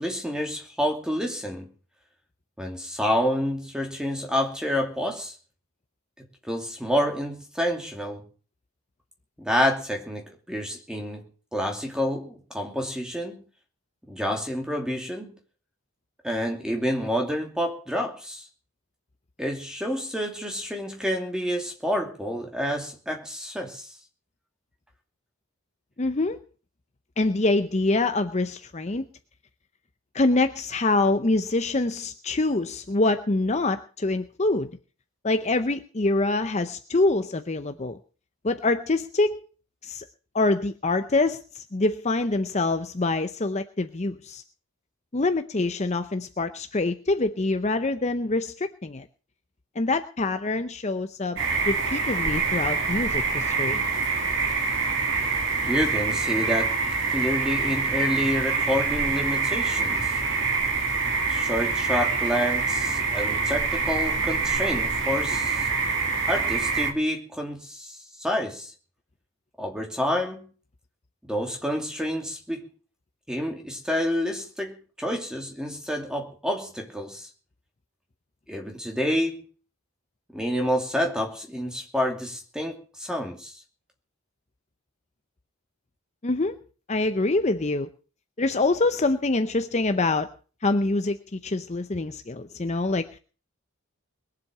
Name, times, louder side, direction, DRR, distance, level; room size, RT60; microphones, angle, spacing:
voice 1, 0.0-1.7 2.6-5.3 6.2-8.2 9.4-11.2 11.5-13.4 14.1-15.3 16.2-18.5 19.4-23.9 55.6-56.7 57.1-60.2 61.3-65.7 66.3-68.7 69.6-70.5 71.2-72.7 73.3-77.3 78.5-79.5 80.3-83.6, equal, 5° right, 2.6 m, -28 dB
voice 2, 26.0-26.4 27.2-29.0 30.1-34.7 35.2-38.0 38.4-39.4 39.8-40.0 40.3-44.4 45.1-49.1 49.8-53.8 86.2-86.6 86.9-87.9 88.4-90.3 90.6-93.2, left 2 dB, 30° left, 0.6 m, -25 dB
sound 1, 51.4-66.9, right 4 dB, 55° right, 2.4 m, -25 dB
21.5 x 7.8 x 6.7 m
head